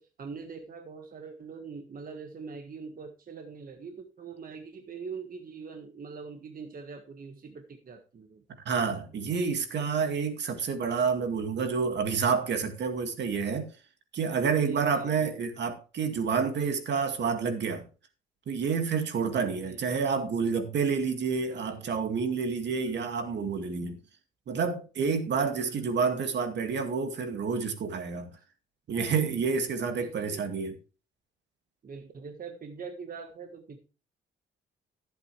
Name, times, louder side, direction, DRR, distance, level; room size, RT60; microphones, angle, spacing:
voice 1, 0.0-8.4 14.4-15.4 19.6-19.9 21.5-21.9 25.4-26.1 29.6-30.4 31.8-33.8, right 5 dB, 45° right, 1.6 m, -43 dB
voice 2, 8.7-13.7 14.1-17.8 18.5-24.0 24.5-28.3 28.9-30.7, right 5 dB, 60° right, 2.2 m, -29 dB
14.5 x 8.0 x 3.3 m
cardioid pair, 90°, 20 cm